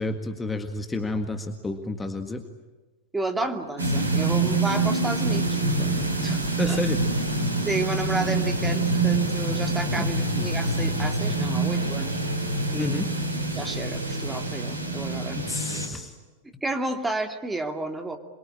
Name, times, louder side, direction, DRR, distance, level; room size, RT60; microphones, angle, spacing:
voice 1, 0.0-2.4 6.6-7.0 10.3-10.5 12.8-13.1 15.4-16.1, left 2 dB, 10° left, 6 dB, 1.9 m, -30 dB
voice 2, 3.1-6.8 7.7-12.2 12.7-13.0 13.5-15.4 16.6-18.2, right 2 dB, 10° right, 5 dB, 2.6 m, -31 dB
sound 1, 3.8-15.9, right 2 dB, 75° right, 4.6 m, -26 dB
27.0 x 23.5 x 8.8 m, 1.2 s
figure-of-eight pair, 90°, 0 cm